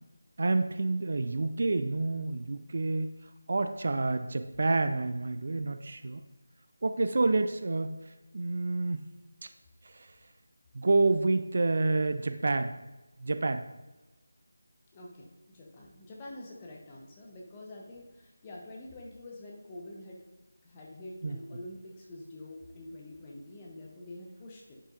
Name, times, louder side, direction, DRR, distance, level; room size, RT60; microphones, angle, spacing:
voice 1, 0.4-3.1 3.5-6.2 6.8-8.0 8.3-9.0 10.7-12.7 13.2-13.6 21.2-21.4, right 3 dB, 50° right, 9 dB, 0.3 m, -28 dB
voice 2, 14.9-20.2 20.6-24.7, left 1 dB, 20° left, -2 dB, 1.0 m, -46 dB
9.7 x 5.5 x 2.5 m, 1.1 s
figure-of-eight pair, 165°, 0 cm